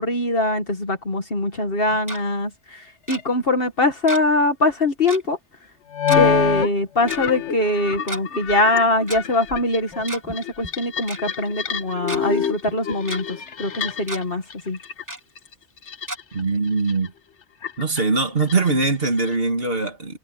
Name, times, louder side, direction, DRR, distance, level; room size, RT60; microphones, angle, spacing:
voice 1, 0.0-5.4 6.1-14.8, left 2 dB, 55° left, 2.0 m, -22 dB
Tick-tock, 1.8-2.2 3.1-3.2 4.1-4.4 4.7-4.8 5.1-5.3 6.1-6.2 7.1-7.2 7.9-8.2 9.1-9.2 9.9-10.4 10.6-10.7 11.1-11.2 11.7-12.2 12.7-13.2 13.6-13.7 14.0-14.2 15.1-15.2 16.1-16.2, right 1 dB, 15° right, 3.0 m, -32 dB
sound 1, 3.1-3.2 5.9-6.7 6.9-14.2 14.5-15.0 15.4-16.4 16.8-17.1 17.6-19.3, left 8 dB, 85° left, 1.5 m, -26 dB
voice 2, 16.3-17.1 17.8-20.2, right 3 dB, 55° right, 2.6 m, -22 dB
omnidirectional pair, 1.2 m